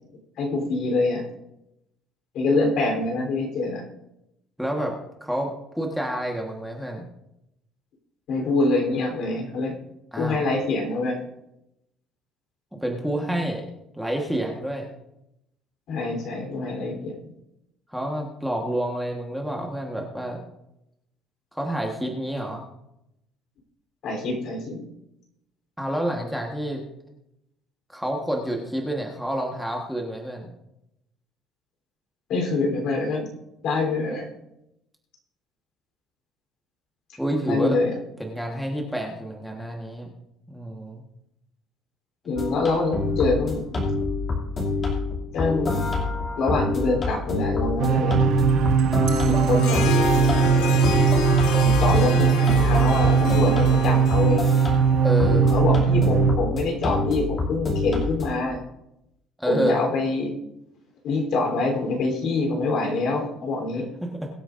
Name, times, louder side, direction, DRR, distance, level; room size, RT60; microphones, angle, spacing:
voice 1, 0.4-1.2 2.3-3.8 8.3-9.7 10.2-11.2 15.9-17.1 24.0-24.8 32.3-33.3 33.6-34.3 37.4-37.9 42.2-43.8 45.3-45.9 46.4-48.2 49.2-49.8 51.8-54.4 55.5-58.6 59.4-60.3 61.0-63.9, left 3 dB, 55° left, 2 dB, 3.5 m, -25 dB
voice 2, 4.6-7.1 10.1-10.4 12.8-13.7 13.9-14.9 17.9-20.4 21.5-22.6 25.8-26.8 27.9-30.5 37.2-37.8 38.2-40.1 40.5-41.0 55.0-55.5 59.4-59.8 64.0-64.3, right 1 dB, ahead, 0 dB, 1.3 m, -28 dB
sound 1, 42.4-58.4, left 3 dB, 25° left, 2.6 m, -27 dB
sound 2, 47.8-56.4, right 6 dB, 55° right, 0.9 m, -20 dB
Harp, 49.5-55.2, left 6 dB, 80° left, 1.3 m, -31 dB
22.0 x 8.9 x 2.6 m, 0.86 s
cardioid pair, 160°, 0 cm